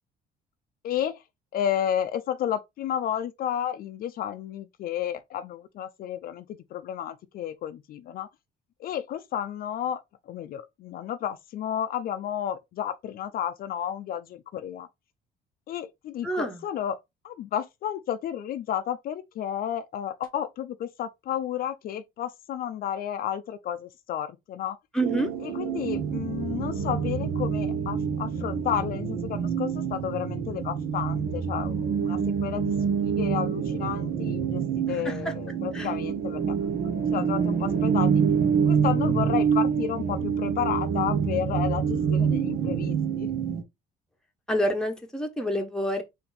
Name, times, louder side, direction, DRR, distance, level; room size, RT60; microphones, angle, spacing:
voice 1, 0.8-1.2 1.5-8.3 8.8-14.9 15.7-17.0 17.2-24.8 25.4-32.7 33.0-38.2 38.7-43.3, left 10 dB, 60° left, 0.5 m, -32 dB
voice 2, 16.2-16.6 24.9-25.3 35.0-35.1 35.7-35.9 44.5-46.0, equal, 5° left, 1.0 m, -27 dB
sound 1, 25.0-43.6, right 7 dB, 70° right, 1.1 m, -26 dB
4.3 x 2.7 x 4.0 m
cardioid pair, 110°, 17 cm